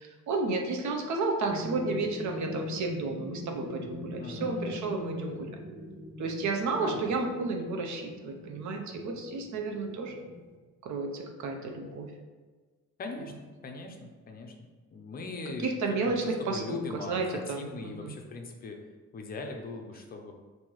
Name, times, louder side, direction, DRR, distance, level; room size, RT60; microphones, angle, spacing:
voice 1, 0.3-5.5 6.2-10.2 10.8-12.1 15.6-18.1, right 3 dB, 60° right, 3 dB, 0.7 m, -32 dB
sound 1, 1.5-10.5, left 1 dB, 25° right, 1.3 m, -42 dB
voice 2, 4.2-4.8 6.8-7.1 13.0-13.3 13.6-14.5 14.9-18.8 19.1-20.3, left 3 dB, 30° left, 3 dB, 0.5 m, -40 dB
5.6 x 2.7 x 3.0 m, 1.4 s
cardioid pair, 160°, 32 cm